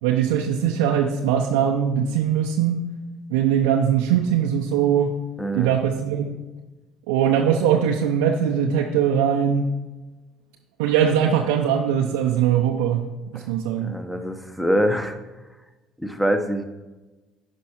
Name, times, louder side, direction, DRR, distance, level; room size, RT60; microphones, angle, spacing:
voice 1, 0.0-2.8 3.3-5.2 5.5-6.4 7.1-9.7 10.8-14.0, right 8 dB, 75° right, 1 dB, 0.6 m, -21 dB
voice 2, 5.4-5.8 13.3-13.5 13.8-15.2 16.0-16.7, equal, 5° left, 6 dB, 1.2 m, -24 dB
11.0 x 5.4 x 4.5 m, 1.2 s
hypercardioid pair, 60°, 0 cm